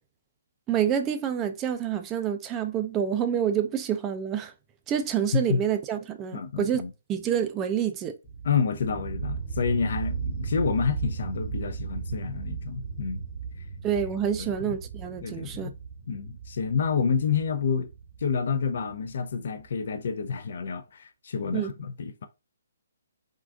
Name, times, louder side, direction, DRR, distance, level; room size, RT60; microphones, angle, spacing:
voice 1, 0.7-4.5 4.9-6.8 7.1-8.1 13.8-15.7 21.5-21.7, right 9 dB, 20° right, 0.3 m, -27 dB
voice 2, 6.3-6.9 8.4-13.2 14.4-14.5 15.2-15.7 16.1-17.9 18.2-22.3, left 6 dB, 60° left, 0.4 m, -28 dB
sound 1, 8.2-19.8, right 5 dB, 30° left, 0.7 m, -36 dB
3.6 x 2.4 x 2.3 m
hypercardioid pair, 150°, 0 cm